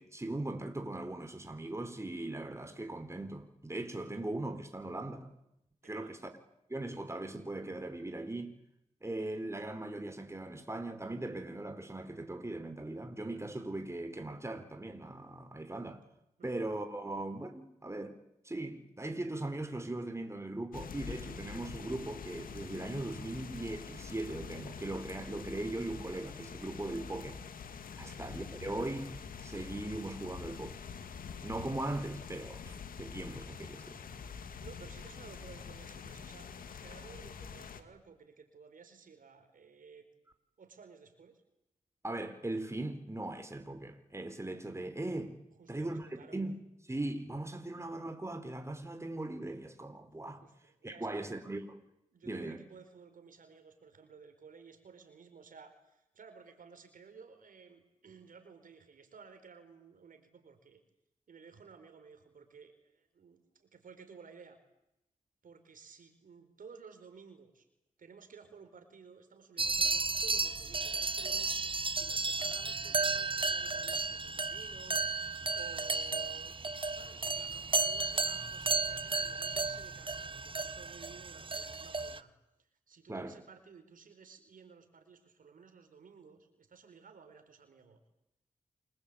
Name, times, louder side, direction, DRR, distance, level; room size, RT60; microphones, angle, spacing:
voice 1, 0.0-5.3 5.9-6.3 6.7-8.6 9.0-16.0 16.4-18.2 18.4-27.4 28.0-30.8 31.4-34.0 42.0-45.4 45.7-50.4 50.8-51.7 52.2-52.6 83.1-83.4, right 2 dB, 20° right, 4.3 m, -39 dB
voice 2, 5.8-6.3 16.4-16.6 28.0-28.2 34.6-36.5 36.8-40.1 40.6-41.4 45.6-46.4 50.4-51.5 52.1-60.8 61.3-64.6 65.4-67.7 68.0-71.6 71.9-82.3 82.9-88.0, right 5 dB, 75° right, 4.7 m, -55 dB
sound 1, 20.7-37.8, left 6 dB, 85° left, 2.3 m, -46 dB
sound 2, 69.6-82.2, right 3 dB, 40° right, 1.4 m, -33 dB
28.5 x 22.0 x 8.8 m
cardioid pair, 50°, 14 cm